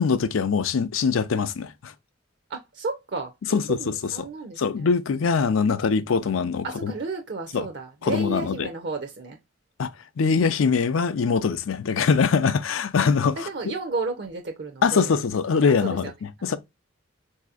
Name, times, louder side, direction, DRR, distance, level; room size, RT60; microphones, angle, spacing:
voice 1, 0.0-1.9 3.5-3.8 4.2-4.3 4.6-6.9 7.5-7.7 8.0-8.7 9.8-9.9 10.2-13.5 14.8-16.6, left 5 dB, 85° left, 0.5 m, -23 dB
voice 2, 2.5-4.9 6.6-9.4 13.4-15.1 15.7-16.1 16.5-16.6, right 3 dB, 55° right, 0.5 m, -33 dB
4.1 x 2.7 x 2.3 m
head